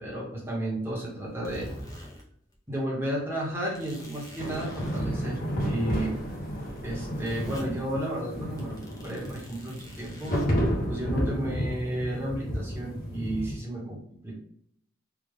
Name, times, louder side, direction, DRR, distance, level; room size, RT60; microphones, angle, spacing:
voice 1, 0.0-1.7 2.7-6.2 6.8-8.8 9.0-10.3 10.9-14.3, right 1 dB, 10° right, -4 dB, 1.2 m, -33 dB
sound 1, 1.2-2.2 2.5-2.6 3.7-5.0 5.6-7.6 8.1-8.3 8.6-10.5, equal, 20° left, 0.7 m, -46 dB
sound 2, 4.4-13.5, equal, 45° left, 1.0 m, -31 dB
3.4 x 2.4 x 3.6 m, 0.68 s
head